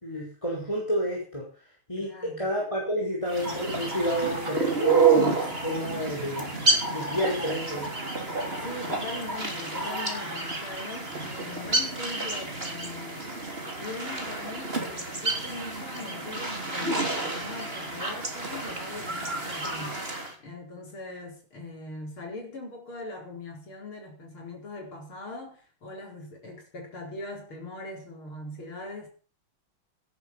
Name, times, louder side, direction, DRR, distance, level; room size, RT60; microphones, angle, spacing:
voice 1, 0.0-1.5 1.9-6.5 6.9-7.8, equal, 15° left, 5.0 m, -30 dB
voice 2, 2.0-2.5 8.6-13.5 13.8-20.0 20.4-29.1, left 2 dB, 80° left, 5.3 m, -41 dB
sound 1, 3.3-20.3, right 3 dB, 25° right, 3.5 m, -29 dB
17.5 x 11.0 x 5.9 m
omnidirectional pair, 2.3 m